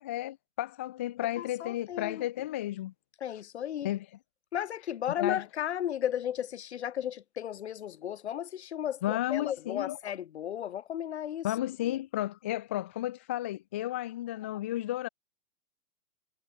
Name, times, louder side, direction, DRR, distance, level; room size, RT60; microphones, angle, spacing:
voice 1, 0.0-2.9 3.8-4.0 5.2-5.4 9.0-10.0 11.4-15.1, left 14 dB, 10° left, 0.5 m, -33 dB
voice 2, 1.4-2.5 3.2-3.9 4.5-11.5, left 10 dB, 55° left, 1.7 m, -34 dB
hypercardioid pair, 165°, 40 cm